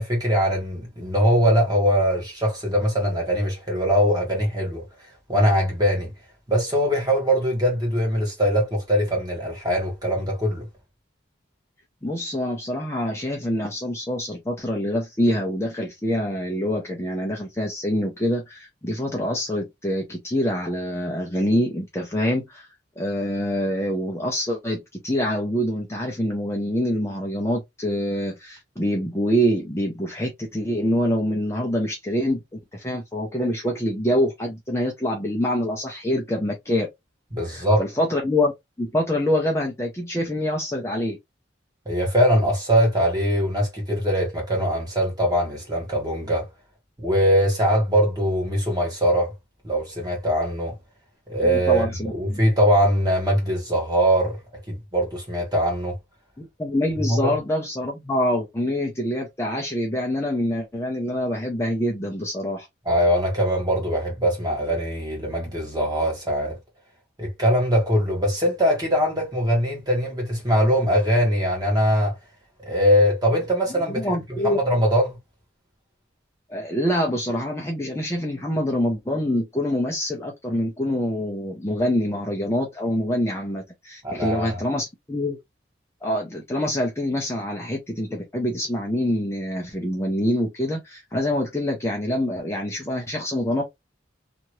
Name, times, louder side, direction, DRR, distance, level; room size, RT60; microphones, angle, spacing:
voice 1, 0.0-4.9 5.3-6.1 6.5-10.7 37.3-37.8 41.8-46.5 47.0-49.3 49.6-50.7 51.3-54.4 54.7-56.0 57.0-57.4 62.8-66.6 67.2-72.1 72.6-75.2 84.0-84.6, equal, 20° right, 1.3 m, -22 dB
voice 2, 12.0-22.7 23.0-36.9 37.5-38.5 38.8-41.2 51.4-52.4 56.4-62.7 73.9-74.6 76.5-85.4 86.0-93.6, left 1 dB, 15° left, 0.5 m, -25 dB
2.8 x 2.5 x 2.9 m
head